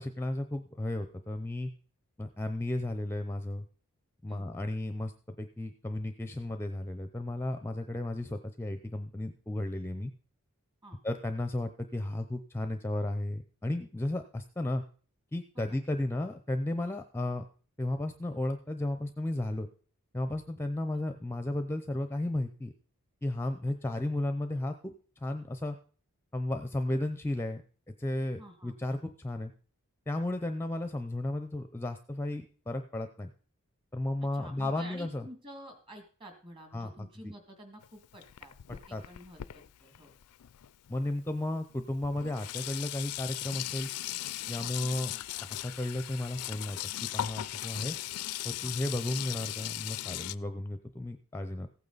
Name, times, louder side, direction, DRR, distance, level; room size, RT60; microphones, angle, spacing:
voice 1, 0.0-1.7 2.2-3.7 4.2-10.1 11.0-14.8 15.3-17.4 17.8-19.7 20.1-22.7 23.2-25.8 26.3-27.6 28.0-29.5 30.1-33.3 33.9-35.2 36.7-37.1 38.9-39.0 40.9-43.9 44.5-45.1 45.4-48.0 48.4-51.7, left 1 dB, 10° left, 8 dB, 0.6 m, -34 dB
voice 2, 28.4-28.7 34.4-40.1 44.6-44.7 48.6-48.7, equal, 25° right, 4 dB, 2.3 m, -50 dB
Sink (filling or washing), 37.8-41.0 41.7-41.8 42.0-50.4, left 14 dB, 85° left, 0.4 m, -38 dB
15.5 x 9.0 x 4.0 m, 0.42 s
head